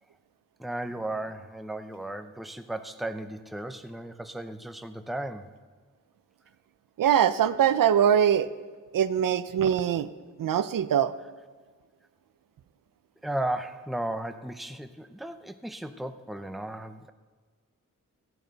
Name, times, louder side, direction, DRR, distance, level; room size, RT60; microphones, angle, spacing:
voice 1, 0.6-5.5 13.2-17.1, right 1 dB, ahead, 8 dB, 0.6 m, -35 dB
voice 2, 7.0-8.5 8.9-10.1 10.4-11.1, right 9 dB, 80° right, 13 dB, 0.6 m, -22 dB
16.5 x 14.5 x 4.0 m, 1.5 s
wide cardioid pair, 130°, 33 cm